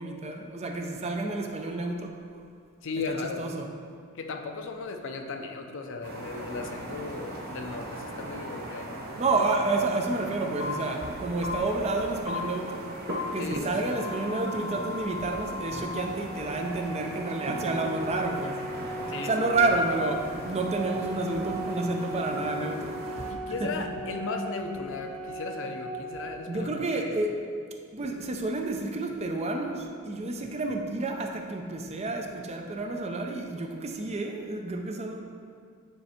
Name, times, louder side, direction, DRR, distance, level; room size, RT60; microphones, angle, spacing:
voice 1, 0.0-2.2 3.1-3.7 9.2-12.9 13.3-18.6 19.2-23.3 23.6-23.9 26.5-27.4 27.9-35.2, right 2 dB, 30° right, 3 dB, 0.5 m, -30 dB
voice 2, 2.8-3.6 4.1-9.1 13.4-14.0 19.1-19.3 23.3-27.1, left 3 dB, 60° left, 5 dB, 0.5 m, -36 dB
sound 1, 6.0-23.3, right 1 dB, 45° right, 0.8 m, -39 dB
sound 2, 10.6-10.7 11.4-11.5 12.3-12.4 13.1-13.2 13.8-16.0, left 3 dB, 85° left, 1.2 m, -37 dB
Organ, 15.9-26.9, right 1 dB, 85° right, 1.1 m, -38 dB
9.2 x 3.3 x 4.3 m, 2.2 s
head